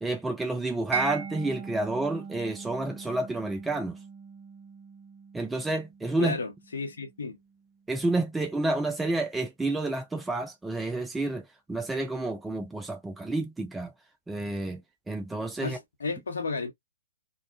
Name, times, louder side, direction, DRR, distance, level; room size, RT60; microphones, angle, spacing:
voice 1, 0.0-4.0 5.3-6.4 7.9-13.9 14.3-14.8 15.1-15.8, right 2 dB, 5° right, 0.4 m, -30 dB
Mallet percussion, 0.9-7.7, right 5 dB, 40° right, 1.1 m, -40 dB
voice 2, 6.2-7.4 15.6-16.7, left 3 dB, 65° left, 1.0 m, -33 dB
2.7 x 2.1 x 2.5 m
figure-of-eight pair, 120°, 0 cm